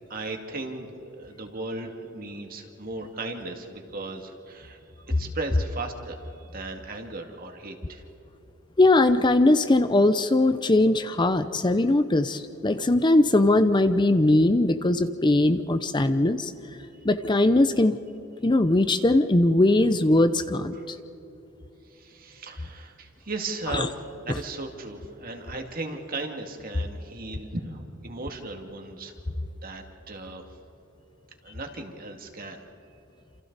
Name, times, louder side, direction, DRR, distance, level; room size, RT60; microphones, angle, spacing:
voice 1, 0.1-4.8 5.1-8.0 20.7-20.9 21.9-29.2 29.6-30.5 31.4-32.6, right 2 dB, 45° right, 3 dB, 2.2 m, -36 dB
voice 2, 8.8-16.5 17.0-18.0 18.4-21.0 23.7-23.9, left 2 dB, 20° left, 10 dB, 0.6 m, -20 dB
28.5 x 27.5 x 4.1 m, 2.9 s
head